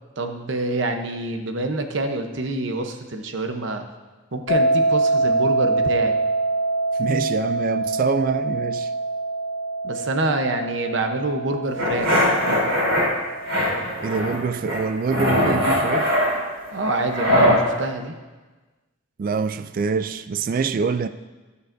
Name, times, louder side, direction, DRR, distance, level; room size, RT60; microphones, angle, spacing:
voice 1, 0.2-3.8 4.3-6.2 9.8-12.3 16.7-18.1, right 2 dB, 60° right, 0.8 m, -26 dB
sound 1, 4.5-15.4, right 2 dB, 50° left, 2.0 m, -25 dB
voice 2, 7.0-8.9 14.0-16.1 19.2-21.1, right 5 dB, 40° right, 0.3 m, -25 dB
sound 2, 11.8-13.1 13.5-14.4 14.7-17.6, equal, 80° right, 3.6 m, -21 dB
17.5 x 6.9 x 2.6 m
head